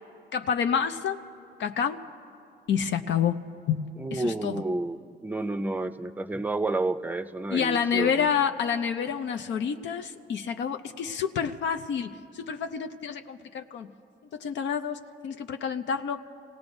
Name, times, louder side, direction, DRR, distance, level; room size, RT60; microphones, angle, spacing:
voice 1, 0.3-1.2 1.6-2.0 2.7-3.4 3.7-3.9 4.1-4.6 7.5-13.9 14.3-16.2, left 7 dB, 65° left, 8 dB, 0.6 m, -28 dB
voice 2, 4.0-8.3, right 2 dB, 10° right, 10 dB, 0.5 m, -30 dB
28.0 x 18.0 x 2.6 m, 2.5 s
cardioid pair, 90°, 20 cm